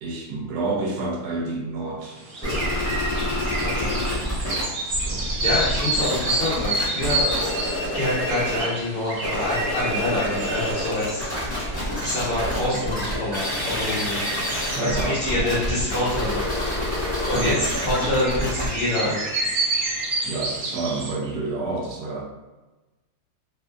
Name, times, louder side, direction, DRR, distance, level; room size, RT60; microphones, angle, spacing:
voice 1, 0.0-2.8 5.0-5.4 14.7-15.5 17.3-17.7 20.2-22.2, right 3 dB, 80° right, -1 dB, 1.1 m, -29 dB
sound 1, 2.0-21.1, right 2 dB, 65° right, 0.6 m, -30 dB
sound 2, 2.4-4.6 4.9-8.7 9.1-20.7, left 1 dB, 5° left, 1.0 m, -28 dB
voice 2, 5.2-7.4 7.9-11.3 12.0-14.3 14.8-16.5 17.2-19.2, left 1 dB, 45° left, -9 dB, 0.9 m, -26 dB
2.6 x 2.6 x 2.2 m, 1.1 s
omnidirectional pair, 1.7 m